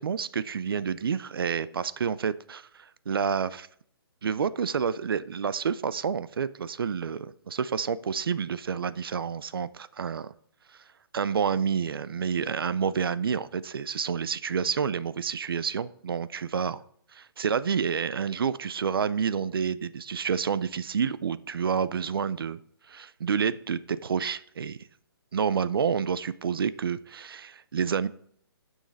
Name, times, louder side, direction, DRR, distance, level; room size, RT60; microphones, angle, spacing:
voice 1, 0.0-3.7 4.2-10.3 11.1-16.8 17.1-22.6 22.9-24.8 25.3-28.1, right 6 dB, 60° right, 16 dB, 0.4 m, -29 dB
9.4 x 6.4 x 4.0 m, 0.65 s
hypercardioid pair, 175°, 13 cm